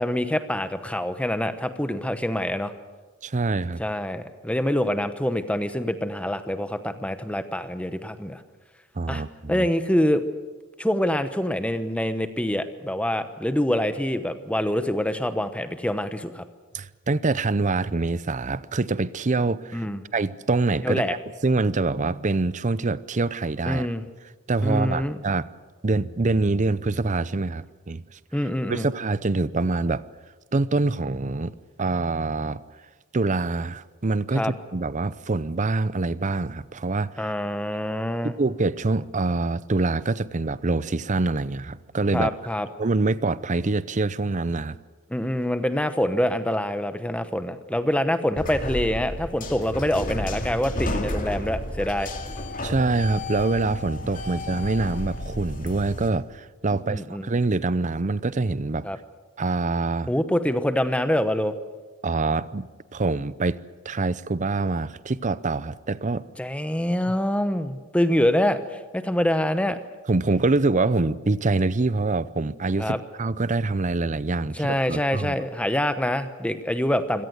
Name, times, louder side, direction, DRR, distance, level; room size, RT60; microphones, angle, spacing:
voice 1, 0.0-2.7 3.8-8.4 9.1-9.2 9.5-10.2 10.8-16.5 19.7-20.0 20.8-21.1 23.7-24.0 24.6-25.2 28.3-28.9 34.3-34.5 37.2-38.4 42.1-42.7 45.1-52.1 56.7-57.3 58.8-59.0 60.1-61.5 66.4-69.8 72.8-73.0 74.5-77.3, left 1 dB, 5° left, 10 dB, 0.9 m, -25 dB
voice 2, 3.2-3.8 9.0-9.7 16.7-19.8 20.1-21.2 21.4-23.9 24.5-25.5 25.8-28.0 28.7-30.0 30.5-32.6 33.1-34.5 34.7-37.3 38.2-42.3 42.8-44.8 52.6-58.9 59.4-60.1 62.0-63.6 63.8-66.3 70.1-75.3, right 3 dB, 35° right, 17 dB, 0.6 m, -25 dB
sound 1, 48.3-56.1, left 1 dB, 40° left, 2.5 m, -32 dB
25.0 x 17.5 x 8.0 m, 1.3 s
head